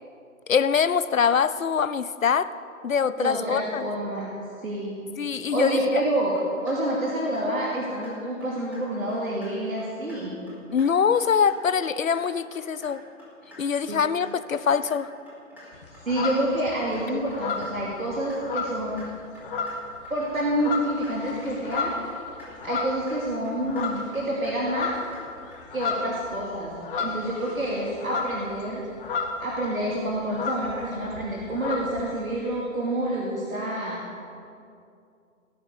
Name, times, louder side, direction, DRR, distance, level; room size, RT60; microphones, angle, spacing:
voice 1, 0.5-2.5 2.8-3.9 5.2-6.0 10.7-13.0 13.6-15.1 17.1-17.2, left 6 dB, 70° left, 14 dB, 0.8 m, -24 dB
voice 2, 3.2-4.3 4.6-4.9 5.5-6.3 6.6-10.3 13.9-14.0 16.0-19.0 20.1-21.9 22.6-24.9 25.7-26.7 27.0-28.8 29.4-34.0, right 1 dB, 75° right, -4 dB, 2.8 m, -28 dB
sound 1, 6.4-6.7 7.0-7.4 7.7-8.1 8.4-8.8 9.1-9.5 9.8-10.2 10.5-10.9 11.1-11.5 11.8-12.2 12.5-12.9 13.2-13.6 13.9-14.3 14.6-14.9 15.3-15.6 15.9-16.3 16.6-17.0 17.3-17.7 18.0-18.4 18.7-19.1 19.3-19.7 20.0-20.4 20.7-21.1 21.4-21.8 22.1-22.5 22.8-23.2 23.4-23.8 24.1-24.5 24.8-25.2 25.5-25.9, left 1 dB, 5° right, 4.7 m, -49 dB
sound 2, 15.7-16.9 17.3-19.1 19.4-20.0 20.4-23.3 23.6-24.2 24.5-29.5 29.8-29.9 30.1-32.0, left 4 dB, 40° left, 1.9 m, -32 dB
18.0 x 9.5 x 6.7 m, 2.5 s
figure-of-eight pair, 130°, 41 cm